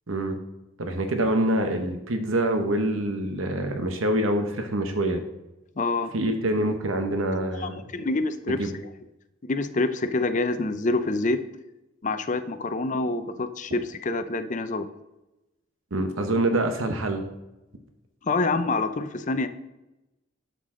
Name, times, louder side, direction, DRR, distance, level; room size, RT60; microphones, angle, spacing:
voice 1, 0.8-5.2 6.1-7.8 8.6-8.7 15.9-17.2, right 1 dB, 70° right, 6 dB, 0.9 m, -25 dB
voice 2, 5.8-6.1 7.6-8.7 9.4-11.4 12.0-14.9 18.2-19.5, left 3 dB, 35° left, 11 dB, 0.5 m, -26 dB
11.5 x 6.7 x 3.7 m, 0.97 s
head